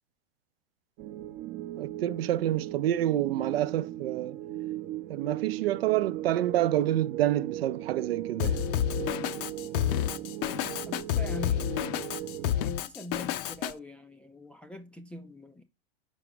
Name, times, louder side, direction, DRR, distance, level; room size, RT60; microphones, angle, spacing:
sound 1, 1.0-12.5, right 13 dB, 40° right, 0.7 m, -38 dB
voice 1, 1.8-4.4 5.1-8.6, right 13 dB, 75° right, 0.6 m, -28 dB
Drum kit, 8.4-13.7, left 11 dB, 45° left, 0.6 m, -29 dB
voice 2, 10.9-11.7 12.5-15.6, equal, 5° left, 0.3 m, -43 dB
5.1 x 4.9 x 5.1 m
hypercardioid pair, 115°, 30 cm